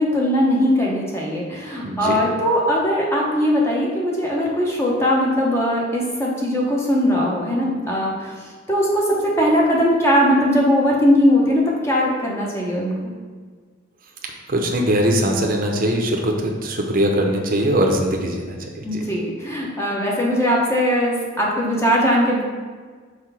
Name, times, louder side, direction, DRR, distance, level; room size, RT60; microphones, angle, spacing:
voice 1, 0.0-8.3 8.7-12.9 18.8-22.4, equal, 15° left, -3 dB, 1.2 m, -20 dB
voice 2, 1.8-2.2 14.5-19.0, right 1 dB, 45° right, 1 dB, 0.8 m, -21 dB
4.8 x 4.3 x 5.7 m, 1.5 s
head